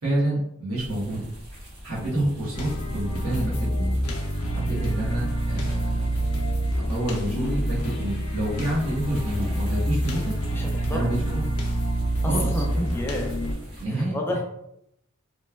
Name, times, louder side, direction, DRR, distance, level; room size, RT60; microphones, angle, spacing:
voice 1, 0.0-1.3 1.8-3.9 4.5-6.1 6.9-10.3 10.9-11.4 12.3-13.0 13.8-14.1, right 1 dB, 85° right, -9 dB, 1.0 m, -28 dB
sound 1, 0.7-13.9, equal, 70° right, 1.2 m, -42 dB
sound 2, 2.5-13.5, right 1 dB, 90° left, 0.5 m, -27 dB
voice 2, 10.5-11.1 12.2-12.7 12.9-13.3 13.9-14.4, left 1 dB, 10° left, 0 dB, 0.4 m, -31 dB
3.0 x 2.2 x 2.3 m, 0.79 s
head